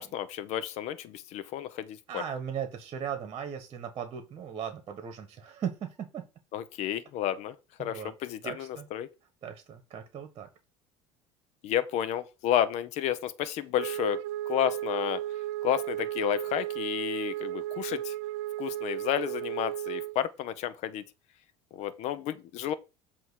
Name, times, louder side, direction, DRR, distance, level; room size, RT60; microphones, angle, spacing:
voice 1, 0.0-2.2 6.5-9.1 11.6-15.2 15.6-18.1 18.6-21.0 21.7-22.7, left 11 dB, 60° left, 0.8 m, -31 dB
voice 2, 2.1-6.2 7.8-8.1 8.4-8.9 9.4-10.5, right 8 dB, 40° right, 1.3 m, -37 dB
Wind instrument woodwind instrument, 13.8-20.2, right 14 dB, 90° right, 0.4 m, -34 dB
7.9 x 3.0 x 6.2 m
supercardioid pair, 110°, 13 cm